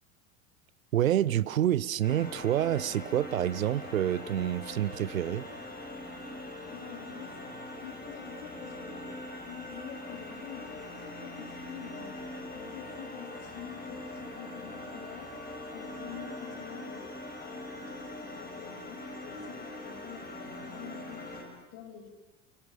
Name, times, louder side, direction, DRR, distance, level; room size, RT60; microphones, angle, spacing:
voice 1, 0.9-5.5, right 11 dB, 80° right, 0.8 m, -28 dB
sound 1, 2.0-21.4, left 1 dB, 25° left, 6.1 m, -42 dB
voice 2, 6.4-7.4 7.8-17.1 17.4-22.1, left 9 dB, 55° left, 4.4 m, -47 dB
29.0 x 23.0 x 6.9 m
figure-of-eight pair, 80°, 40 cm